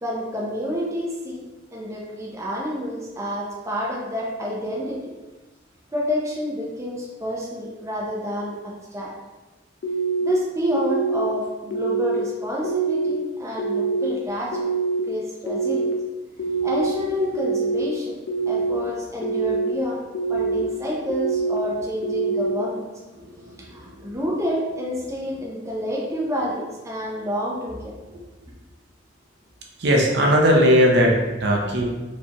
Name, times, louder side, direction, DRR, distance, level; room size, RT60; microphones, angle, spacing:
voice 1, 0.0-1.4 1.7-5.0 5.9-9.1 10.2-14.6 15.1-15.9 16.6-18.1 18.5-20.0 20.3-22.8 23.7-27.9, equal, 15° right, -4 dB, 0.6 m, -28 dB
sound 1, 9.8-10.3 10.8-11.3 11.7-12.2 12.6-13.1 13.6-14.1 14.5-15.0 15.5-15.9 16.4-16.9 17.3-17.8 18.3-18.8 19.2-19.7 20.1-20.6 21.1-21.6 22.0-22.5, right 4 dB, 60° left, 0.5 m, -24 dB
voice 2, 23.1-23.9 29.8-31.9, equal, 60° right, -1 dB, 0.7 m, -19 dB
4.5 x 3.2 x 2.9 m, 1.2 s
head